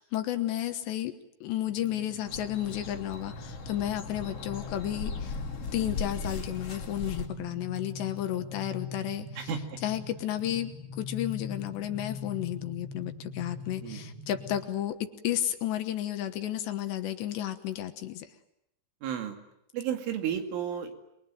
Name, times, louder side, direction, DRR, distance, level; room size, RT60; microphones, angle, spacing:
voice 1, 0.0-5.4 5.7-9.3 9.8-18.3, left 12 dB, 70° left, 8 dB, 3.2 m, -32 dB
sound 1, 1.6-14.6, left 3 dB, 50° right, 7.0 m, -43 dB
sound 2, 2.3-7.3, left 4 dB, 40° left, 2.7 m, -38 dB
voice 2, 9.4-9.8 13.8-14.0 19.0-19.4 19.7-21.0, right 8 dB, 80° right, 5 dB, 4.9 m, -32 dB
27.5 x 22.0 x 9.2 m, 0.81 s
omnidirectional pair, 5.6 m